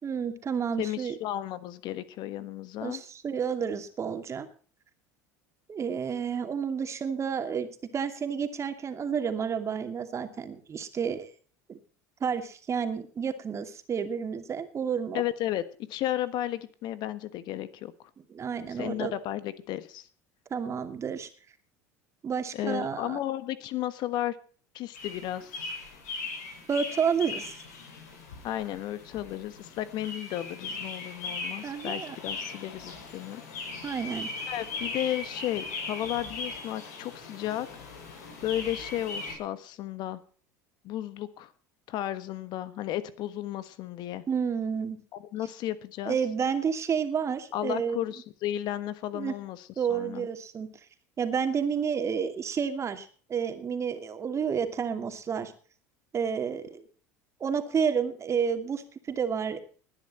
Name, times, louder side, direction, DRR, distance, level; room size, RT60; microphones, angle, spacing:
voice 1, 0.0-1.1 2.8-4.5 5.7-11.3 11.7-11.8 12.2-15.2 18.3-19.1 20.5-21.3 22.2-23.2 26.7-27.5 31.6-32.2 33.8-34.3 44.3-45.0 46.1-48.1 49.1-49.4 49.8-50.7 51.2-55.5 56.1-56.9 57.4-59.6, right 7 dB, 35° right, 7 dB, 2.5 m, -30 dB
voice 2, 0.8-3.0 15.1-15.6 15.9-17.9 18.7-20.1 22.5-24.4 24.7-25.7 28.4-33.4 34.5-37.7 38.4-40.2 40.8-41.5 41.9-44.2 45.3-46.2 47.5-50.3, left 13 dB, 55° left, 14 dB, 1.4 m, -33 dB
sound 1, 24.9-39.3, left 3 dB, 80° left, 5.7 m, -39 dB
19.5 x 10.0 x 4.3 m, 0.42 s
hypercardioid pair, 80°, 9 cm